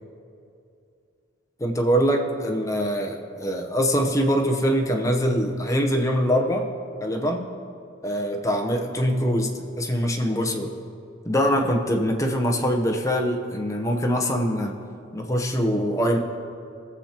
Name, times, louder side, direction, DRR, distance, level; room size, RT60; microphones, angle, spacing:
voice 1, 1.6-6.7 7.0-7.5 8.0-10.7 11.2-14.7 15.1-16.2, equal, 15° left, 1 dB, 0.8 m, -23 dB
20.5 x 7.3 x 2.9 m, 2.6 s
head